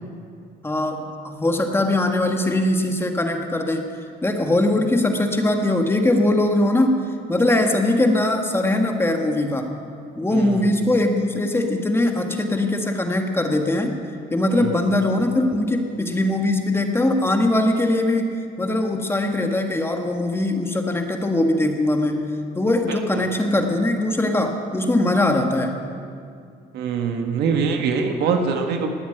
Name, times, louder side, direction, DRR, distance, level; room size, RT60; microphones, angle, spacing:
voice 1, 0.6-3.9 4.2-7.0 7.3-9.7 10.2-13.9 14.3-22.3 22.5-25.7, left 1 dB, 15° left, 4 dB, 1.7 m, -21 dB
voice 2, 10.3-10.7 14.5-14.8 22.9-23.3 26.7-28.9, right 5 dB, 75° right, 4 dB, 1.5 m, -24 dB
19.5 x 7.8 x 9.1 m, 2.3 s
cardioid pair, 110°, 17 cm